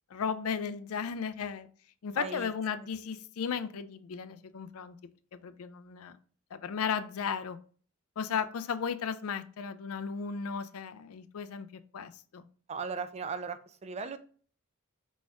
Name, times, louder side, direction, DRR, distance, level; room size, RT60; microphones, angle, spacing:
voice 1, 0.1-1.7 2.0-5.0 5.3-6.2 6.5-7.6 8.2-12.4, left 6 dB, 80° left, 11 dB, 0.4 m, -35 dB
voice 2, 2.1-2.5 12.7-14.2, right 5 dB, 30° right, 11 dB, 0.3 m, -37 dB
4.8 x 4.1 x 2.3 m, 0.44 s
head